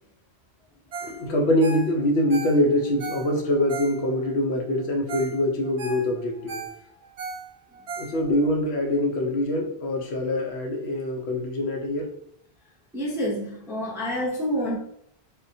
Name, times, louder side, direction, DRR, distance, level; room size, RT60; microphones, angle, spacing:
Ringtone, 0.9-1.2 1.5-4.3 4.8-4.9 5.1-5.4 5.6-8.5 9.0-9.1, right 4 dB, 90° right, 0.9 m, -37 dB
voice 1, 1.0-6.6 8.0-12.1, left 1 dB, 80° left, 2 dB, 0.9 m, -24 dB
voice 2, 12.9-14.8, equal, 5° right, -4 dB, 0.4 m, -28 dB
3.6 x 2.2 x 2.6 m, 0.69 s
omnidirectional pair, 1.1 m